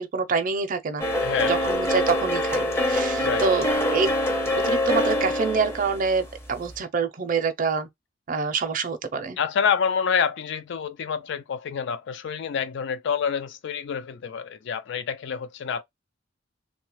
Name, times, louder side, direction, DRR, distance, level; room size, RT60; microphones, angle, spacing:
voice 1, 0.0-1.1 1.5-4.1 4.5-7.9 8.3-9.4, right 4 dB, 45° right, 0.5 m, -26 dB
sound 1, 1.0-6.8, left 1 dB, 15° left, 0.6 m, -25 dB
voice 2, 1.2-1.6 3.2-3.6 9.4-15.8, left 7 dB, 65° left, 0.4 m, -27 dB
3.1 x 2.3 x 2.9 m
head